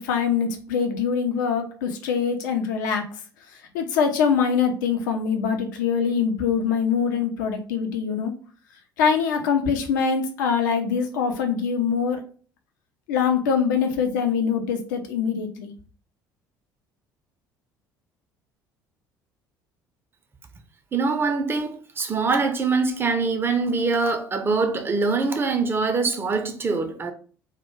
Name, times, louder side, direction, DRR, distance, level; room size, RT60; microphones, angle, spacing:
voice 1, 0.0-3.1 3.7-8.3 9.0-12.2 13.1-15.7, left 6 dB, 65° left, 0.5 m, -23 dB
voice 2, 20.9-27.1, right 4 dB, 20° right, 0.4 m, -23 dB
2.2 x 2.1 x 3.0 m
figure-of-eight pair, 55°, 11 cm